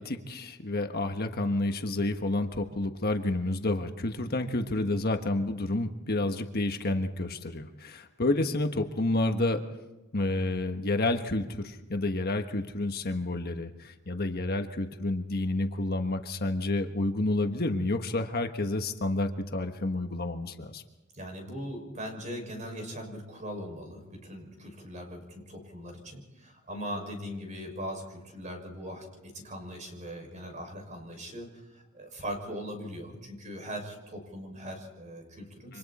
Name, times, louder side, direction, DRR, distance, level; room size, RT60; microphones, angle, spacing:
voice 1, 0.0-9.6 10.1-20.8 35.7-35.8, left 2 dB, 45° left, 6 dB, 1.4 m, -29 dB
voice 2, 21.1-35.8, equal, 35° right, 3 dB, 6.2 m, -40 dB
29.0 x 25.5 x 4.3 m, 1.0 s
head